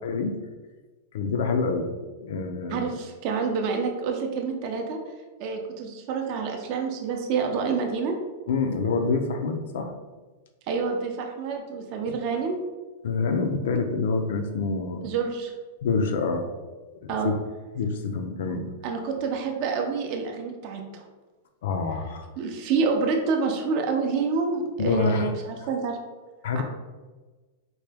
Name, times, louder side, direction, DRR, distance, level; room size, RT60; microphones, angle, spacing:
voice 1, 0.0-0.4 1.1-1.9 2.2-2.9 8.5-9.9 12.1-12.2 13.0-15.1 15.8-16.5 17.0-17.3 17.7-18.7 21.6-22.3 24.8-25.3 26.4-26.6, left 4 dB, 60° left, 6 dB, 0.4 m, -26 dB
voice 2, 2.7-5.0 5.4-8.1 10.7-12.6 15.0-15.5 17.1-17.3 18.8-21.0 22.4-26.0 26.5-26.6, right 5 dB, 35° right, 3 dB, 0.5 m, -28 dB
4.4 x 2.2 x 3.3 m, 1.3 s
supercardioid pair, 170°, 0 cm